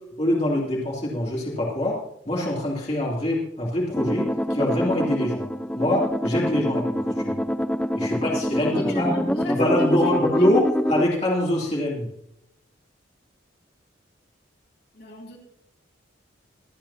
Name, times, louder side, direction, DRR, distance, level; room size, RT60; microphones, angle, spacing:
voice 1, 0.2-1.9 2.3-5.4 5.7-7.0 7.2-7.4 8.0-9.1 9.5-12.1, left 1 dB, 35° left, -5 dB, 3.0 m, -24 dB
sound 1, 3.9-11.0, equal, 5° left, 0.5 m, -25 dB
voice 2, 8.0-10.5 14.9-15.4, left 1 dB, 55° left, -2 dB, 3.3 m, -36 dB
26.5 x 8.9 x 2.9 m, 0.71 s
head